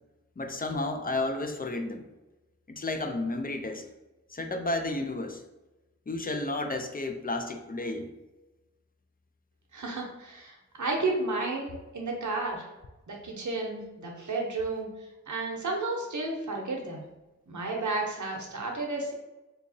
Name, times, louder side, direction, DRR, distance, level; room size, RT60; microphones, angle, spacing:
voice 1, 0.4-2.0 2.7-3.8 4.3-5.4 6.1-8.1, left 2 dB, 30° left, 6 dB, 0.4 m, -32 dB
voice 2, 9.7-12.6 13.1-14.9 15.3-17.0 17.5-19.1, right 3 dB, 85° right, 0 dB, 0.6 m, -32 dB
3.8 x 2.7 x 2.6 m, 1.0 s
wide cardioid pair, 60°, 29 cm